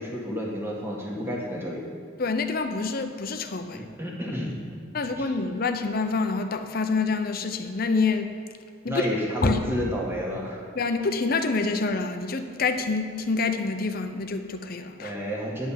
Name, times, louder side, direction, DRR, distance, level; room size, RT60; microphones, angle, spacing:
voice 1, 0.0-1.8 3.7-5.2 8.8-10.6 15.0-15.7, equal, 10° right, -3 dB, 1.7 m, -31 dB
voice 2, 2.2-3.9 4.9-8.3 8.8-9.0 9.4-9.6 10.7-15.1, left 4 dB, 45° left, 7 dB, 0.7 m, -27 dB
10.5 x 5.4 x 7.5 m, 2.3 s
head